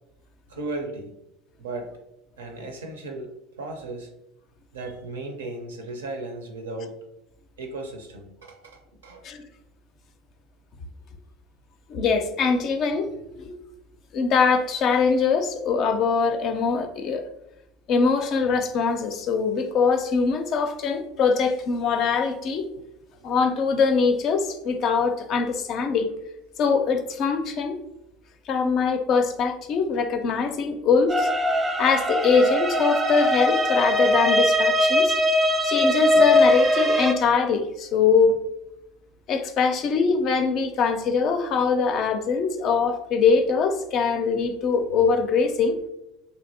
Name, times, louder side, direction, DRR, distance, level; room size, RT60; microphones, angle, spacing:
voice 1, 0.5-1.1 1.6-1.9 2.4-3.3 3.6-4.1 4.7-6.9 7.6-9.2, right 2 dB, 85° right, 4 dB, 0.5 m, -35 dB
voice 2, 11.9-13.5 14.1-17.2 17.9-22.7 23.2-26.1 26.6-27.8 28.5-31.3 31.8-35.2 35.6-38.4 39.3-45.8, left 5 dB, 50° left, 7 dB, 0.4 m, -22 dB
sound 1, 31.1-37.1, left 1 dB, 20° right, 0.3 m, -21 dB
3.1 x 2.6 x 2.6 m, 0.87 s
hypercardioid pair, 75°, 0 cm